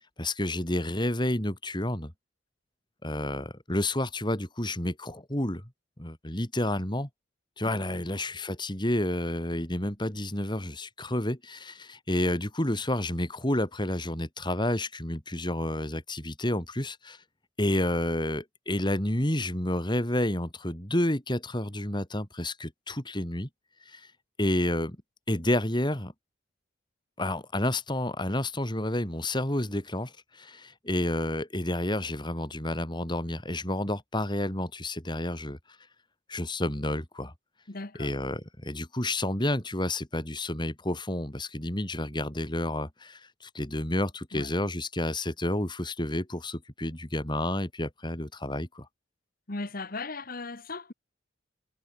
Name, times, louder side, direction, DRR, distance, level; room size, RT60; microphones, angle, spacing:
voice 1, 0.2-2.1 3.0-5.6 6.0-7.1 7.6-17.2 17.6-23.5 23.9-24.1 24.4-25.0 25.3-26.1 27.2-35.6 36.3-37.3 38.0-48.9, left 1 dB, 25° left, 3.8 m, -30 dB
voice 2, 37.7-38.1 44.3-44.5 49.5-50.9, left 3 dB, 45° left, 1.5 m, -37 dB
head